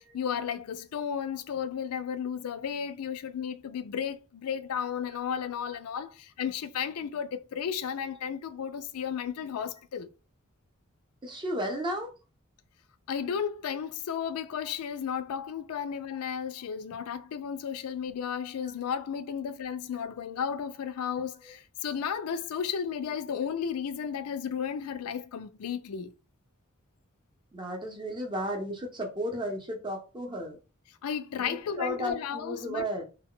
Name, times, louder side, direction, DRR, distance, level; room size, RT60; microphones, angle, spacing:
voice 1, 0.0-10.1 13.1-26.1 31.0-32.9, left 7 dB, 85° left, 0.4 m, -33 dB
voice 2, 11.2-12.1 27.5-30.6 31.4-33.0, equal, 20° right, 0.7 m, -34 dB
2.2 x 2.1 x 3.7 m
head